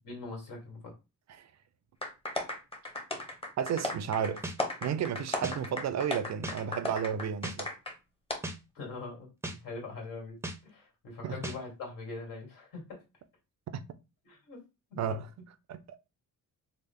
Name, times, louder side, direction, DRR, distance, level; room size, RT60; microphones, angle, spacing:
voice 1, 0.0-0.9 8.7-10.4 10.6-13.0 14.2-14.6 14.9-15.2, left 3 dB, 75° left, 1.7 m, -42 dB
sound 1, 2.0-7.9 8.3-8.4, left 1 dB, 15° left, 0.8 m, -36 dB
voice 2, 3.6-4.4 4.8-7.7 11.2-11.4 13.7-13.8 15.0-15.3 15.7-15.9, right 8 dB, 55° right, 0.5 m, -32 dB
sound 2, 4.4-4.6 5.4-5.6 6.4-6.6 7.4-7.6 8.4-8.6 9.4-9.6 10.4-10.6 11.4-11.6, right 2 dB, 10° right, 0.5 m, -36 dB
3.4 x 2.0 x 3.5 m
cardioid pair, 80°, 33 cm